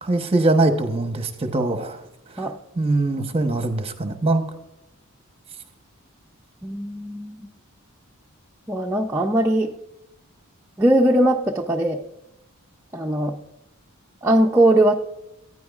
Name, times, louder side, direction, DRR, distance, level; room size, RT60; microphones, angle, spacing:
voice 1, 0.0-2.0 2.3-2.5 2.8-4.4, right 2 dB, 25° right, 7 dB, 0.8 m, -22 dB
voice 2, 6.6-7.5 8.7-9.7 10.8-12.0 12.9-13.4 14.2-15.0, right 1 dB, 10° right, -1 dB, 0.4 m, -20 dB
15.0 x 9.5 x 2.4 m, 0.90 s
head